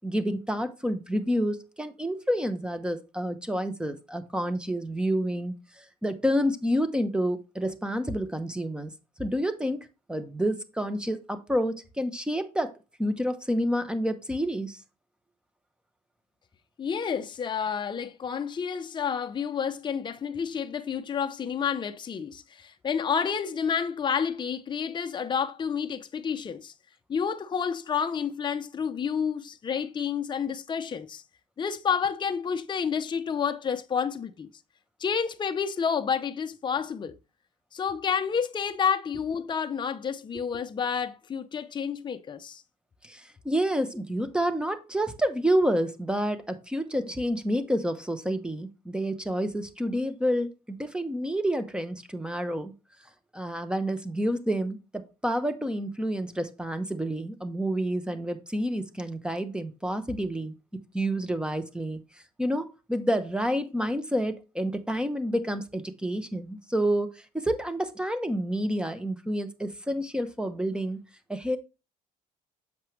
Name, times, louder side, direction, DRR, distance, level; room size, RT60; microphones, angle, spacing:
voice 1, 0.0-8.9 9.2-12.7 13.0-14.8 43.0-52.7 53.3-60.5 60.9-62.0 62.4-71.0 71.3-71.6, equal, 5° right, 0.9 m, -29 dB
voice 2, 16.8-26.7 27.1-31.2 31.6-34.5 35.0-37.1 37.7-42.6, left 7 dB, 25° left, 0.6 m, -29 dB
7.5 x 5.9 x 3.2 m
cardioid pair, 110°, 17 cm